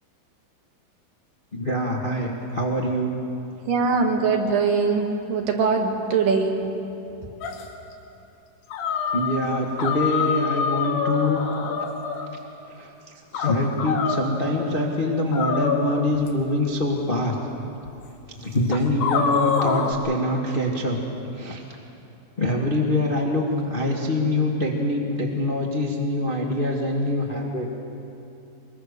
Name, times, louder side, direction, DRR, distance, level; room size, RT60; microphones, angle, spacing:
voice 1, 1.5-3.1 9.1-11.5 12.8-12.9 13.3-17.3 18.4-21.0 21.4-21.6 22.4-27.7, left 1 dB, 35° left, -1 dB, 0.8 m, -24 dB
voice 2, 3.7-6.5, right 5 dB, 70° right, 2 dB, 3.4 m, -22 dB
sound 1, 7.4-7.6 8.7-9.4 9.8-12.3 13.3-14.3 15.3-16.3 17.2-17.3 17.9-18.0 18.7-19.9, left 6 dB, 85° left, 3.4 m, -25 dB
23.5 x 22.0 x 6.8 m, 2.8 s
omnidirectional pair, 4.2 m